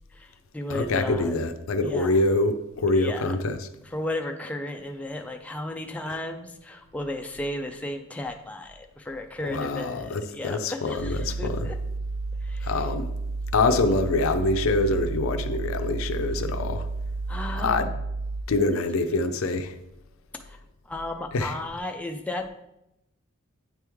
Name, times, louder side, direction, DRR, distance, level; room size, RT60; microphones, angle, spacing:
voice 1, 0.1-1.3 1.8-2.2 2.9-3.2 3.8-11.8 12.4-12.8 17.3-17.8 20.5-20.6 20.9-22.5, left 1 dB, 5° left, 3 dB, 0.3 m, -34 dB
voice 2, 0.7-3.6 9.5-11.6 12.6-13.1 13.5-16.8 17.6-17.9 18.5-19.8 21.3-21.5, left 2 dB, 70° left, 9 dB, 0.5 m, -25 dB
sound 1, 11.0-18.4, right 3 dB, 70° right, 0.5 m, -31 dB
9.1 x 3.1 x 3.5 m, 0.88 s
head